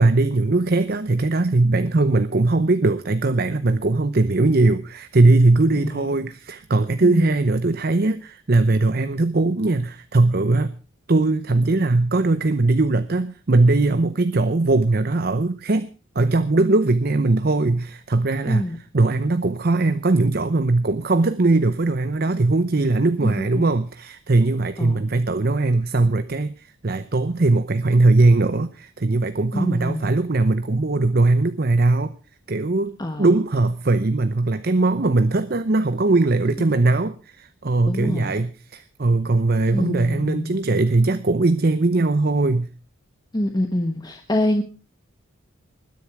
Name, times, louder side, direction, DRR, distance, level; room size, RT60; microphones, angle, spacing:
voice 1, 0.0-10.7 11.1-15.9 16.1-18.7 18.9-32.1 32.5-42.7, right 2 dB, 45° right, 12 dB, 0.7 m, -20 dB
voice 2, 7.0-7.4 18.5-18.8 23.2-23.7 24.8-25.1 29.5-30.1 33.0-33.3 36.4-36.5 37.9-38.4 39.7-40.8 43.3-44.6, left 1 dB, 20° left, 5 dB, 1.1 m, -26 dB
20.0 x 10.5 x 4.7 m, 0.35 s
head